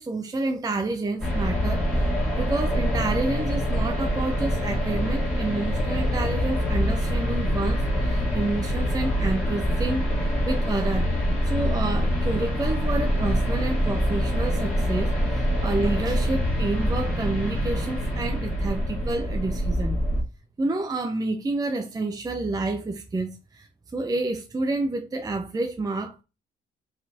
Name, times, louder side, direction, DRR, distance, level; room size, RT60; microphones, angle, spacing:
voice 1, 0.0-1.9 2.4-10.0 10.4-11.1 11.4-20.0 20.6-23.7 23.9-26.2, right 2 dB, 20° right, 0.5 m, -29 dB
sound 1, 1.2-20.2, equal, 5° left, 2.0 m, -25 dB
4.4 x 4.0 x 2.8 m
cardioid pair, 125°, 21 cm